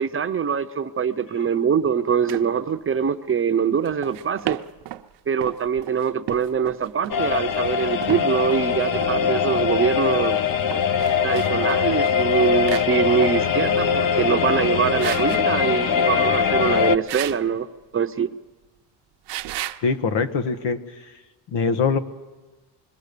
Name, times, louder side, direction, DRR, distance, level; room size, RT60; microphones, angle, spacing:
voice 1, 0.0-4.6 5.3-10.4 11.2-17.7 17.9-18.3, right 7 dB, 30° right, 9 dB, 0.8 m, -23 dB
sound 1, 2.3-2.5 3.8-5.0 5.4-8.7 9.0-9.1 10.5-12.1 12.4-13.4 13.8-14.0 14.5-14.7 15.0-15.4 17.1-17.5 19.3-19.8, right 14 dB, 70° right, 0.8 m, -34 dB
sound 2, 7.1-17.0, left 7 dB, 50° left, 0.9 m, -22 dB
voice 2, 19.8-20.8 21.5-22.0, left 5 dB, 75° left, 9 dB, 1.6 m, -22 dB
26.0 x 22.0 x 6.8 m, 1.2 s
cardioid pair, 130°, 44 cm